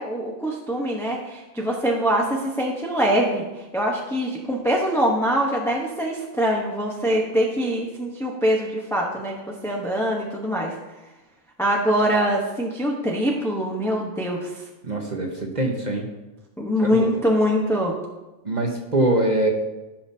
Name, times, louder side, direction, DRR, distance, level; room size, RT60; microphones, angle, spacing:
voice 1, 0.0-3.4 3.7-9.4 9.6-10.7 11.6-14.5 16.6-17.9, equal, ahead, -2 dB, 0.8 m, -23 dB
voice 2, 14.8-16.1 16.8-17.1 18.4-19.5, right 2 dB, 40° right, 2 dB, 1.0 m, -23 dB
15.5 x 5.8 x 2.8 m, 1.1 s
omnidirectional pair, 1.3 m